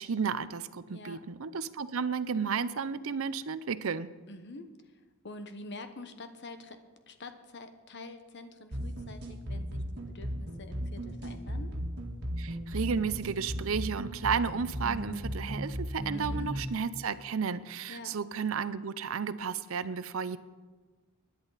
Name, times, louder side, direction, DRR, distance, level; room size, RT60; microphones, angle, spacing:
voice 1, 0.0-4.1 12.4-20.4, right 6 dB, 70° right, 14 dB, 0.6 m, -33 dB
voice 2, 4.3-5.0 5.2-6.8 7.1-11.7 16.1-16.5 17.9-18.1, left 2 dB, 55° left, 8 dB, 1.1 m, -46 dB
sound 1, 8.7-16.7, equal, 50° right, 1.8 m, -36 dB
25.0 x 10.5 x 4.1 m, 1.4 s
head